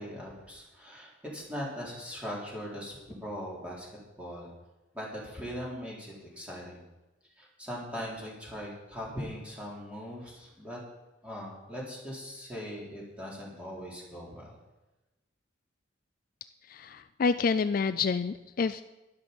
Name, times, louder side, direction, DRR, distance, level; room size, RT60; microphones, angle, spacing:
voice 1, 0.0-3.9 4.2-4.5 4.9-6.8 7.4-10.8 11.2-14.6, equal, 5° right, -4 dB, 3.6 m, -40 dB
voice 2, 16.7-18.8, left 5 dB, 45° left, 12 dB, 0.3 m, -28 dB
12.5 x 11.0 x 5.2 m, 1.1 s
head